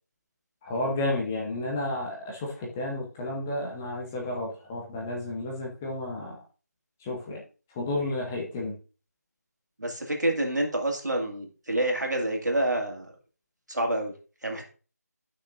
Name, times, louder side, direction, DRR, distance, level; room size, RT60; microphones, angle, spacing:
voice 1, 0.6-6.4 7.0-7.4 7.7-8.8, left 2 dB, 10° left, -1 dB, 0.8 m, -32 dB
voice 2, 9.8-13.1 13.7-14.1 14.4-14.7, right 1 dB, 85° right, 2 dB, 2.2 m, -28 dB
11.0 x 6.1 x 2.5 m, 0.36 s
figure-of-eight pair, 170°, 9 cm